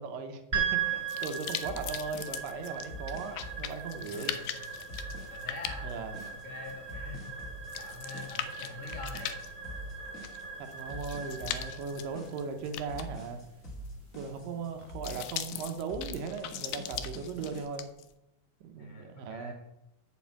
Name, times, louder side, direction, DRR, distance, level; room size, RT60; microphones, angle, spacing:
voice 1, 0.0-4.4 5.8-6.2 10.6-13.4 14.1-17.9 18.6-19.5, right 5 dB, 75° right, 6 dB, 2.4 m, -38 dB
sound 1, 0.5-14.9, right 7 dB, 15° right, 3.4 m, -39 dB
voice 2, 0.9-1.3 1.6-1.7 2.9-3.0 4.1-4.7 5.3-5.9 6.3-7.4 7.8-9.4 18.8-19.5, left 3 dB, 50° left, 1 dB, 2.1 m, -45 dB
sound 2, 1.1-18.1, left 11 dB, 80° left, 1.9 m, -41 dB
sound 3, 1.6-17.6, equal, 30° left, 1.5 m, -45 dB
7.6 x 5.4 x 7.3 m, 0.89 s
omnidirectional pair, 4.3 m